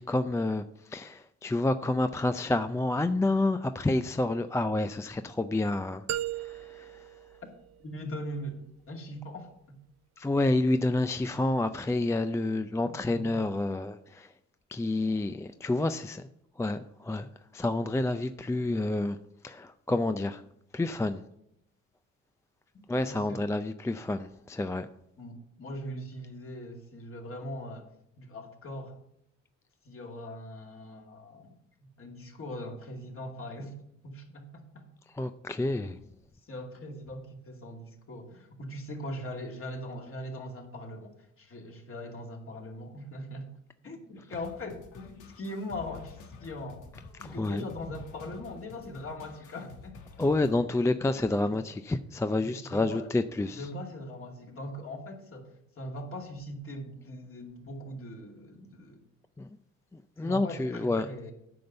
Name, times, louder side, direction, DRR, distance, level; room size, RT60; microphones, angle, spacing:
voice 1, 0.0-6.0 6.3-7.1 10.2-14.3 14.7-16.3 16.6-19.2 19.4-20.4 20.7-21.2 22.9-24.9 35.1-36.0 47.2-47.6 50.2-53.7 59.4-59.5 59.9-61.1, left 2 dB, 10° left, 0.4 m, -29 dB
sound 1, 6.1-8.1, right 12 dB, 60° right, 0.5 m, -37 dB
voice 2, 7.8-8.6 8.9-9.8 13.0-13.4 23.1-23.4 25.2-27.9 28.2-29.0 29.8-31.5 32.0-34.9 35.8-36.0 36.5-43.5 43.8-46.9 47.2-50.0 52.4-53.1 53.5-59.0 60.2-61.3, left 1 dB, 45° left, 2.5 m, -41 dB
sound 2, 44.3-50.6, left 4 dB, 85° left, 1.5 m, -50 dB
9.3 x 5.3 x 7.9 m
cardioid pair, 90°, 30 cm